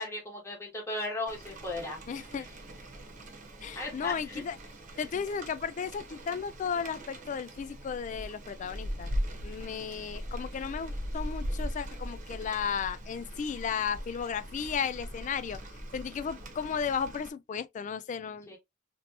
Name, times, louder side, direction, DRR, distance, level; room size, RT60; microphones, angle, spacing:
voice 1, 0.0-2.0 3.7-4.4 18.5-18.6, left 2 dB, 15° left, 1.2 m, -36 dB
Rain, 1.3-17.3, equal, 40° right, 1.0 m, -40 dB
voice 2, 2.1-2.5 3.6-4.6 5.0-9.1 9.4-15.6 15.9-18.6, left 6 dB, 40° left, 0.3 m, -34 dB
2.9 x 2.9 x 2.8 m
head